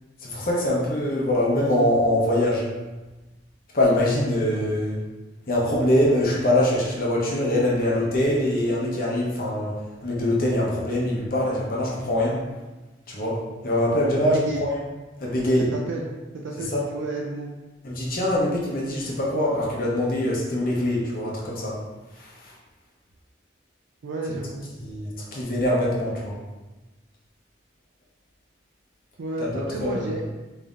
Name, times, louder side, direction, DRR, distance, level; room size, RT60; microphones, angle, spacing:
voice 1, 0.2-2.6 3.7-4.9 5.5-9.7 10.0-12.4 13.1-13.4 13.6-14.8 15.2-15.7 16.7-16.8 17.8-21.7 22.4-22.5 24.8-26.4 29.5-30.0, left 1 dB, 50° left, -4 dB, 0.8 m, -23 dB
voice 2, 14.1-14.7 15.6-17.5 24.0-24.7 29.2-30.2, right 2 dB, 85° right, -1 dB, 0.4 m, -32 dB
5.2 x 2.7 x 2.5 m, 1.1 s
head